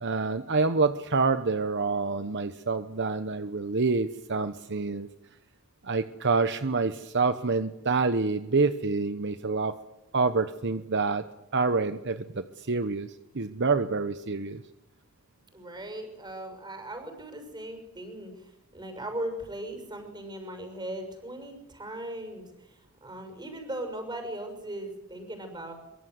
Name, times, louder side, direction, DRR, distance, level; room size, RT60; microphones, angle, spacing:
voice 1, 0.0-5.1 5.8-9.7 10.1-11.2 11.5-13.1 13.3-14.6, right 4 dB, 55° right, 10 dB, 1.0 m, -27 dB
voice 2, 15.5-25.7, right 1 dB, 20° right, 6 dB, 6.5 m, -38 dB
24.0 x 23.5 x 8.1 m, 0.94 s
head